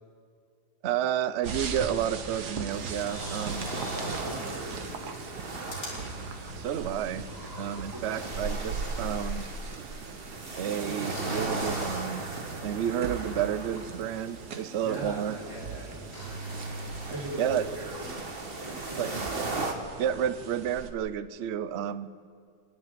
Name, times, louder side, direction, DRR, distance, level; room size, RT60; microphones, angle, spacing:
voice 1, 0.8-3.7 6.6-7.2 7.6-9.5 10.6-12.3 12.6-15.4 17.4-17.6 19.0-19.1 20.0-22.1, right 9 dB, 90° right, 13 dB, 0.5 m, -30 dB
sound 1, 1.4-20.9, right 4 dB, 60° right, 1.7 m, -40 dB
sound 2, 2.7-19.7, right 3 dB, 30° right, 1.9 m, -39 dB
sound 3, 3.1-4.4 5.1-5.2 5.7-8.6 9.0-9.1 11.0-12.2 14.9-15.0 15.5-15.8 16.1-17.1, right 1 dB, 65° left, 3.7 m, -40 dB
voice 2, 4.2-6.1 7.9-8.1 14.8-16.1 17.1-18.2 18.6-19.2, right 1 dB, 10° right, -6 dB, 4.6 m, -41 dB
28.5 x 10.5 x 9.3 m, 2.1 s
omnidirectional pair, 2.0 m